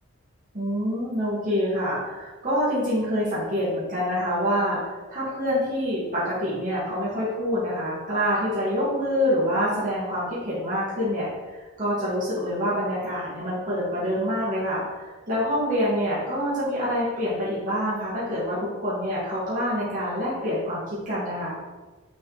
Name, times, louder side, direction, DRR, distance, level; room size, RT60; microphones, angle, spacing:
voice 1, 0.5-20.8 21.1-21.6, equal, 40° right, -10 dB, 2.1 m, -26 dB
6.4 x 4.2 x 4.0 m, 1.2 s
head